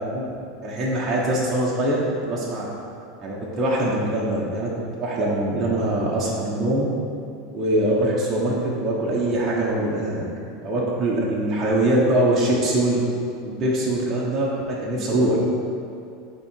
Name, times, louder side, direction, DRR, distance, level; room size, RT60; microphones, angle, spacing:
voice 1, 0.6-2.0 2.2-2.7 3.2-4.7 5.0-6.9 7.5-10.2 10.6-13.0 13.4-15.6, right 1 dB, 20° right, -7 dB, 1.0 m, -23 dB
8.5 x 3.7 x 4.5 m, 2.5 s
supercardioid pair, 160°, 0 cm